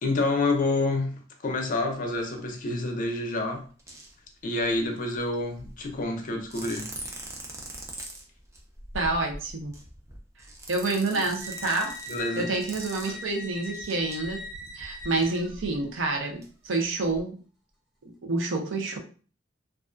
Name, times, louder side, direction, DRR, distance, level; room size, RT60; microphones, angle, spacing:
voice 1, 0.0-3.7 4.4-6.9 12.1-12.5, left 2 dB, 45° left, 0.5 m, -28 dB
sound 1, 2.0-2.1 3.0-3.4 3.8-4.1 4.4-6.0 6.4-16.0 16.4-16.5 16.7-17.2, right 1 dB, 15° right, 0.4 m, -43 dB
voice 2, 8.9-9.7 10.7-12.0 12.4-14.4 14.7-17.4 18.2-19.0, right 3 dB, 85° right, 0.5 m, -28 dB
sound 2, 11.4-15.9, left 1 dB, ahead, 0.8 m, -41 dB
2.4 x 2.2 x 2.4 m
head